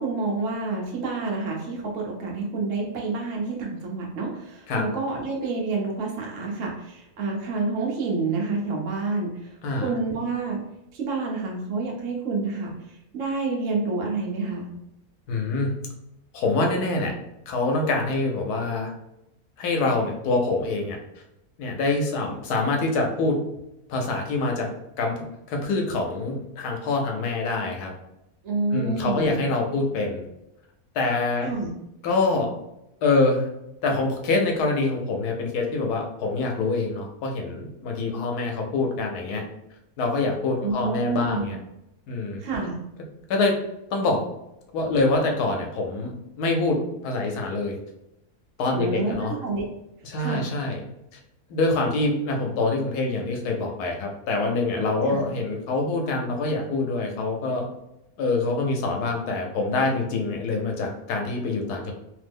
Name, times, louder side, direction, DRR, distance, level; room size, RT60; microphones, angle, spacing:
voice 1, 0.0-10.6 10.9-14.7 28.4-29.3 31.4-31.7 40.6-41.5 42.4-42.8 48.7-49.6 50.2-50.5 55.0-55.2, right 3 dB, 60° right, -2 dB, 1.0 m, -28 dB
voice 2, 15.3-15.7 16.3-17.1 17.5-18.9 19.6-21.0 21.6-23.4 23.9-24.7 25.0-27.9 28.7-30.2 30.9-31.5 32.0-32.5 33.0-33.5 33.8-39.4 40.0-41.6 42.1-42.4 43.3-43.5 43.9-44.2 44.7-47.8 48.6-49.4 50.0-50.8 51.1-51.2 51.5-57.6 58.2-61.9, left 3 dB, 80° left, 2 dB, 1.2 m, -25 dB
3.0 x 2.0 x 3.4 m, 0.86 s
omnidirectional pair, 1.6 m